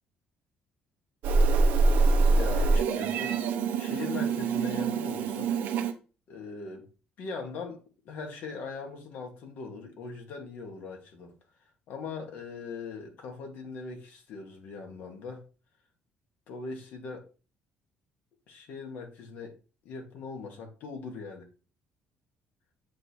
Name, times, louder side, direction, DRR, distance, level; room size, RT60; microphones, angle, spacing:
Meow, 1.2-5.9, right 3 dB, 75° right, 0.8 m, -25 dB
voice 1, 2.0-5.5 6.3-6.9 7.2-11.3 11.9-15.5 16.5-17.2 18.5-19.6 19.9-21.5, left 4 dB, 65° left, 1.6 m, -40 dB
7.4 x 2.8 x 4.5 m
cardioid pair, 145°, 3 cm